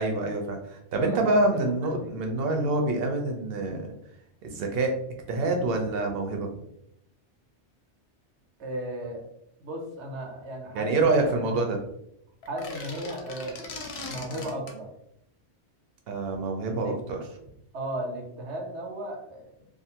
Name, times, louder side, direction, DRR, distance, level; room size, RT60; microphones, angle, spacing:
voice 1, 0.0-3.8 4.4-4.9 5.3-6.5 10.7-11.8 16.1-17.2, right 2 dB, 65° right, 3 dB, 0.8 m, -26 dB
voice 2, 0.9-2.1 8.6-9.2 9.6-11.6 12.5-13.8 14.0-14.9 16.7-16.9 17.7-19.7, right 1 dB, 85° right, 1 dB, 1.0 m, -35 dB
sound 1, 12.4-14.8, left 3 dB, 60° left, 0.7 m, -39 dB
2.5 x 2.4 x 2.7 m, 0.75 s
omnidirectional pair, 1.2 m